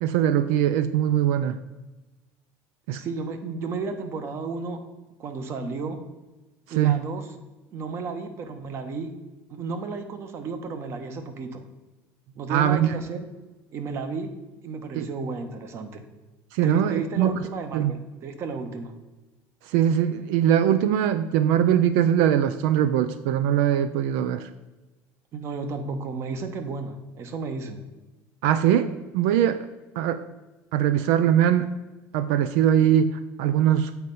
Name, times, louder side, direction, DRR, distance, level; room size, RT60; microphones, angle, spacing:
voice 1, 0.0-1.6 2.9-3.0 6.8-7.0 12.5-12.9 15.0-15.1 16.5-17.4 17.7-17.9 19.7-24.5 28.4-29.6 30.0-30.2 30.7-31.7 32.1-33.9, right 10 dB, 90° right, 12 dB, 0.4 m, -21 dB
voice 2, 2.9-4.8 5.2-6.0 6.7-7.3 7.7-9.1 9.5-11.6 12.3-13.2 13.7-14.3 14.6-16.0 16.6-18.9 25.3-27.8, right 4 dB, 40° right, 8 dB, 0.9 m, -33 dB
8.0 x 4.3 x 5.3 m, 1.1 s
cardioid pair, 155°, 7 cm